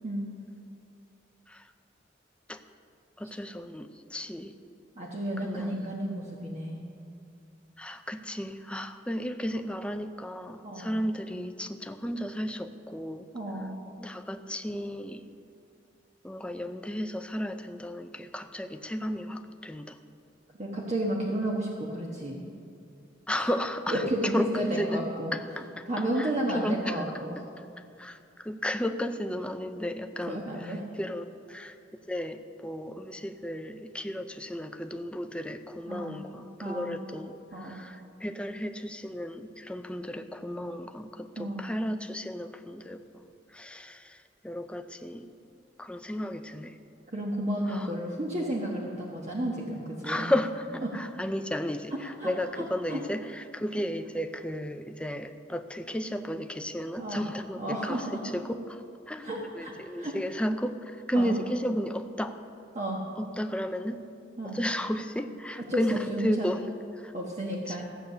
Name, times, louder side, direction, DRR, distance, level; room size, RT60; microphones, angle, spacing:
voice 1, 0.0-0.4 5.0-6.8 10.6-11.0 13.3-13.8 20.6-22.4 23.3-23.5 23.9-25.3 25.9-27.4 30.3-30.8 35.9-36.2 36.6-37.0 37.5-37.8 41.4-41.7 47.1-50.3 50.8-50.9 51.9-53.0 57.0-57.2 57.6-58.3 59.2-60.2 61.1-61.3 62.7-63.0 64.4-64.6 65.7-66.5 67.1-67.9, right 1 dB, 40° right, -3 dB, 1.3 m, -32 dB
voice 2, 3.2-4.5 5.4-5.8 7.8-13.3 14.0-15.3 16.2-20.0 23.3-25.8 26.2-26.3 26.5-27.1 28.0-31.8 32.1-43.0 43.5-45.3 45.8-46.8 47.7-47.9 50.0-59.3 59.5-62.4 63.2-64.0 64.4-67.1 67.7-67.8, equal, 5° left, 7 dB, 0.6 m, -33 dB
15.0 x 8.3 x 6.8 m, 2.5 s
head